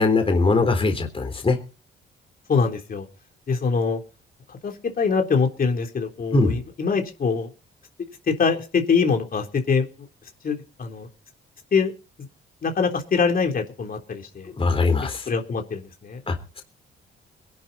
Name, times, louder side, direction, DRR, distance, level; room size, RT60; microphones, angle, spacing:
voice 1, 0.0-1.6 6.3-6.6 14.5-15.3 16.3-16.6, left 3 dB, 30° left, 6 dB, 3.7 m, -21 dB
voice 2, 2.5-3.1 3.5-4.0 4.6-7.5 8.3-9.9 10.4-11.1 11.7-11.9 12.6-14.5 15.3-16.2, left 5 dB, 45° left, 3 dB, 3.7 m, -23 dB
22.0 x 11.5 x 4.3 m, 0.36 s
cardioid pair, 90°, 20 cm